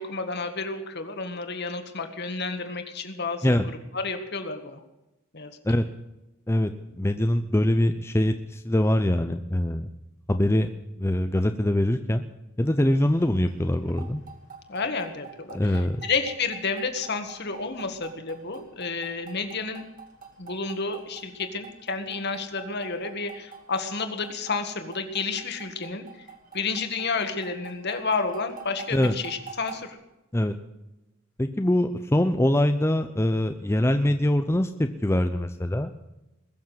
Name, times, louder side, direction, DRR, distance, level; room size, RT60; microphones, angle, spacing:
voice 1, 0.0-3.5 3.9-4.8 5.3-5.6 14.7-19.8 20.4-26.3 26.5-30.0, left 4 dB, 50° left, 7 dB, 1.8 m, -31 dB
voice 2, 6.5-9.9 10.3-10.7 11.0-12.2 12.6-14.2 15.5-16.0 28.9-29.2 30.3-30.6 31.4-35.9, left 1 dB, 10° left, 7 dB, 0.6 m, -23 dB
sound 1, 12.9-29.9, right 6 dB, 40° right, 2.6 m, -47 dB
21.0 x 7.2 x 9.4 m, 0.95 s
head